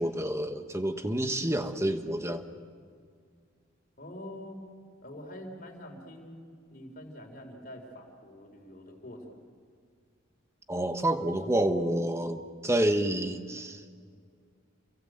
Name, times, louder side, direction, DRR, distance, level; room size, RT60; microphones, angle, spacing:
voice 1, 0.0-2.4 10.7-13.8, right 1 dB, 15° right, 7 dB, 1.2 m, -28 dB
voice 2, 4.0-4.6 5.0-9.4, left 1 dB, 40° left, 2 dB, 4.4 m, -45 dB
29.0 x 23.0 x 8.0 m, 2.1 s
head